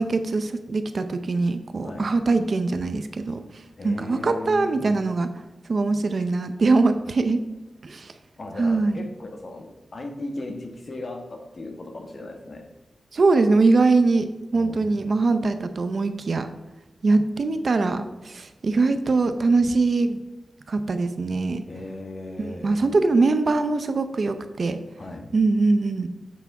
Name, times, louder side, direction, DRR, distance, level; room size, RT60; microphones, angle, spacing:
voice 1, 0.0-3.4 3.8-5.3 5.7-7.4 7.8-8.1 8.6-9.1 13.1-14.3 14.5-16.5 17.0-20.2 20.7-21.6 22.4-24.8 25.3-26.1, right 3 dB, 65° right, 9 dB, 0.6 m, -22 dB
voice 2, 3.8-4.7 8.4-12.7 14.5-15.1 21.7-22.8 25.0-25.3, left 2 dB, 55° left, 4 dB, 1.2 m, -37 dB
8.3 x 3.4 x 4.6 m, 1.1 s
cardioid pair, 50°, 0 cm